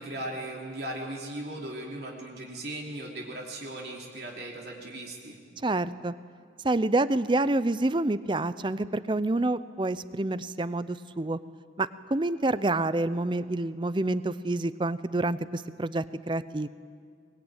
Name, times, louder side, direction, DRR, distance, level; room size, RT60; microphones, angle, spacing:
voice 1, 0.0-5.4, right 1 dB, 60° right, -1 dB, 3.1 m, -38 dB
voice 2, 5.6-6.1 6.6-11.4 11.8-16.7, right 2 dB, 25° right, 15 dB, 0.6 m, -28 dB
23.0 x 21.0 x 9.0 m, 2.1 s
head